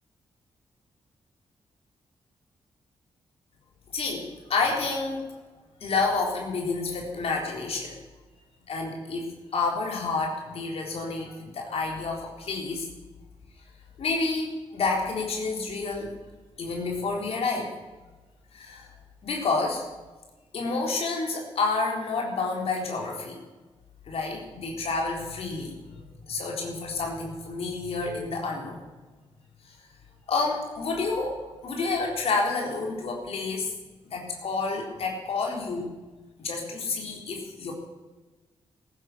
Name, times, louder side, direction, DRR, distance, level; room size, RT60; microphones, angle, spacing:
voice 1, 3.9-5.3 5.8-8.0 8.7-12.9 14.0-16.1 16.6-17.7 18.5-18.9 19.2-19.8 20.5-23.4 24.1-28.8 29.6-29.8 30.3-33.7 34.1-35.9 36.4-37.7, left 3 dB, 70° left, 0 dB, 3.9 m, -29 dB
17.5 x 10.5 x 6.9 m, 1.2 s
cardioid pair, 70°, 11 cm